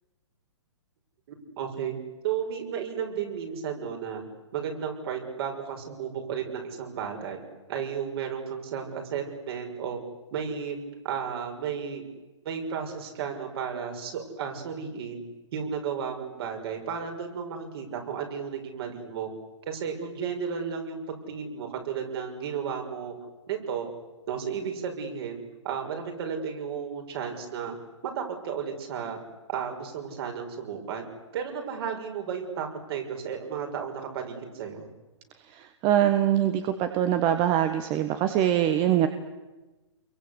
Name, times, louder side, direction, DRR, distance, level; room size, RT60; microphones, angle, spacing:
voice 1, 1.3-1.9 2.2-4.2 4.5-7.4 7.7-10.0 10.3-10.8 11.0-12.0 12.4-15.2 15.5-19.3 19.7-23.1 23.5-23.9 24.3-27.8 28.0-29.2 29.5-31.0 31.3-34.9, right 7 dB, 55° right, 3 dB, 6.1 m, -33 dB
voice 2, 35.5-39.1, right 11 dB, 30° right, 8 dB, 1.5 m, -23 dB
27.5 x 23.0 x 8.3 m, 1.1 s
hypercardioid pair, 135°, 16 cm